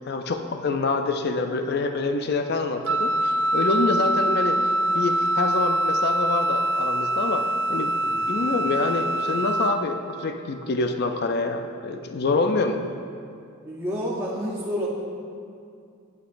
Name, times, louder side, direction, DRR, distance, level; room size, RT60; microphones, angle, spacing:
voice 1, 0.1-4.6 4.9-7.9 8.3-12.8, left 3 dB, 45° left, 6 dB, 0.4 m, -26 dB
Wind instrument woodwind instrument, 2.9-9.8, right 1 dB, 55° right, 0.4 m, -24 dB
voice 2, 13.6-14.9, equal, 10° right, -7 dB, 0.7 m, -29 dB
11.5 x 8.0 x 2.6 m, 2.5 s
head